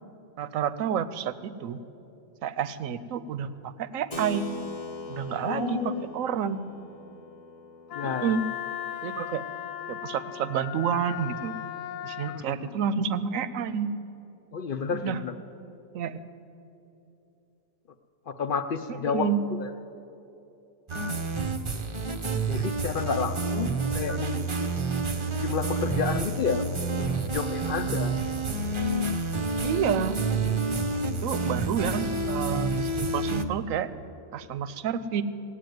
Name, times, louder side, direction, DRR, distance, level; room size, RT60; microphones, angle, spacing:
voice 1, 0.4-1.8 2.4-4.5 5.1-6.6 8.0-8.4 9.0-9.4 9.9-11.6 12.0-13.9 14.9-15.2 15.9-16.2 18.9-19.4 29.6-30.2 31.2-33.9 34.3-35.2, right 8 dB, 85° right, 14 dB, 1.0 m, -29 dB
Keyboard (musical), 4.1-10.1, left 2 dB, 30° left, 0.9 m, -42 dB
voice 2, 5.4-6.1 7.9-8.3 12.3-12.7 14.5-15.3 18.3-19.3 19.6-19.7 22.4-24.8 25.4-26.9 27.2-28.1, left 6 dB, 55° left, 8 dB, 0.6 m, -31 dB
Wind instrument woodwind instrument, 7.9-12.4, left 11 dB, 80° left, 1.0 m, -37 dB
sound 1, 20.9-33.4, right 3 dB, 35° right, 0.5 m, -29 dB
17.0 x 8.2 x 9.3 m, 2.8 s
omnidirectional pair, 1.4 m